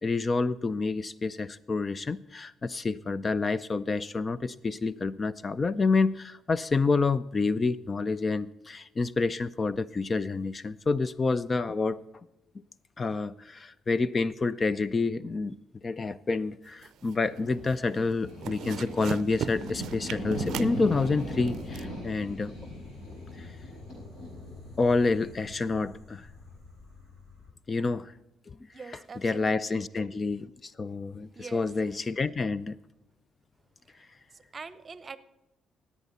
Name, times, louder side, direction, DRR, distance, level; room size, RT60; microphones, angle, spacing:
voice 1, 0.0-12.0 13.0-15.6 15.8-22.5 23.4-23.5 24.8-26.3 27.7-28.1 28.5-28.6 29.2-32.8, left 3 dB, 30° left, 17 dB, 0.4 m, -28 dB
sound 1, 16.7-17.4 17.7-18.0 18.3-21.8, right 10 dB, 75° right, 0.4 m, -38 dB
sound 2, 17.1-27.5, left 1 dB, 70° left, 5.2 m, -39 dB
voice 2, 28.7-29.8 31.3-31.7 34.0-34.1 34.3-35.2, right 5 dB, 35° right, 14 dB, 0.8 m, -44 dB
17.5 x 8.4 x 4.1 m, 0.95 s
cardioid pair, 100°, 0 cm